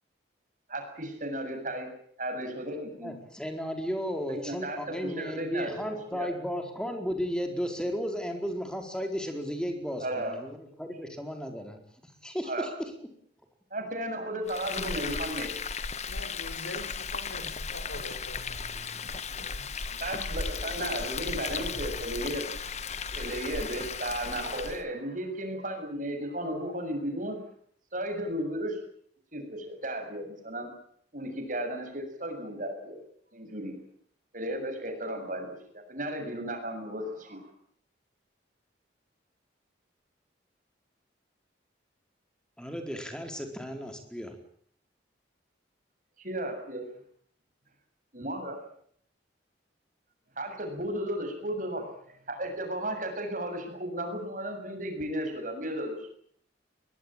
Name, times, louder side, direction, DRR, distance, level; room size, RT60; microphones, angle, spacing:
voice 1, 0.7-1.9 2.2-3.1 4.3-4.8 5.2-6.3 10.0-10.3 12.5-12.7 13.7-15.5 19.9-22.4 23.1-27.4 27.9-28.8 29.3-30.7 31.1-33.0 33.3-33.7 34.3-35.5 35.7-37.5 46.2-46.9 48.1-48.6 50.4-51.9 52.3-56.1, right 1 dB, 40° right, 5 dB, 7.3 m, -34 dB
voice 2, 3.0-12.9 42.6-44.3, equal, 5° left, 5 dB, 4.4 m, -34 dB
Frying (food), 14.5-24.8, left 5 dB, 35° left, 1.3 m, -35 dB
voice 3, 16.1-19.7 21.2-21.9, left 1 dB, 75° left, 8 dB, 5.6 m, -44 dB
22.5 x 21.5 x 8.9 m, 0.63 s
head